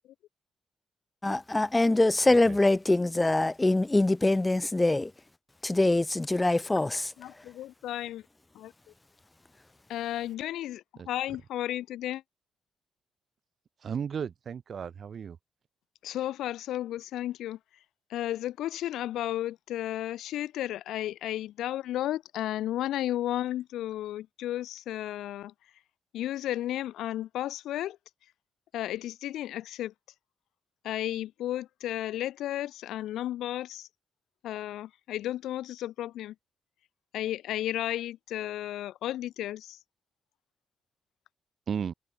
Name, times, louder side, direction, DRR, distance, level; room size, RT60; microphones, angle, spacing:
voice 1, 1.2-5.1 5.6-7.1, left 2 dB, 15° left, 5.1 m, -24 dB
voice 2, 7.2-8.2 8.6-8.7 9.9-12.2 16.0-17.6 18.1-25.5 26.1-28.0 28.7-29.9 30.8-33.9 34.4-36.3 37.1-39.8, left 13 dB, 90° left, 5.5 m, -33 dB
voice 3, 13.8-15.4 41.7-41.9, right 7 dB, 55° right, 4.0 m, -34 dB
cardioid pair, 95°, 0 cm